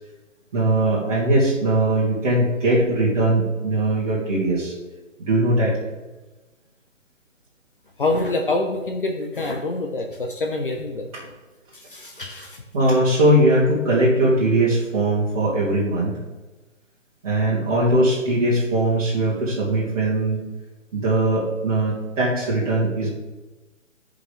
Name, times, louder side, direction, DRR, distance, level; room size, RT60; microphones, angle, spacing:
voice 1, 0.5-4.7 5.2-5.8 12.7-16.2 17.2-20.4 20.9-23.1, right 1 dB, 30° right, -8 dB, 1.8 m, -20 dB
voice 2, 8.0-11.3 11.7-12.6, left 2 dB, 45° left, 2 dB, 0.8 m, -26 dB
13.0 x 5.2 x 3.4 m, 1.2 s
figure-of-eight pair, 145°, 38 cm